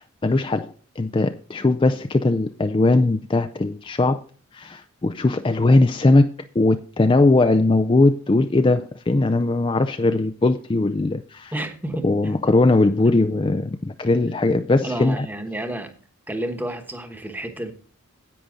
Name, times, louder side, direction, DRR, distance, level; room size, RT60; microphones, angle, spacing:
voice 1, 0.0-4.2 4.5-6.3 6.6-11.5 12.0-15.3, left 2 dB, 25° left, 0.4 m, -19 dB
voice 2, 11.5-12.3 14.8-15.9 16.3-17.7, right 1 dB, 10° right, 1.1 m, -30 dB
10.5 x 8.6 x 3.8 m
head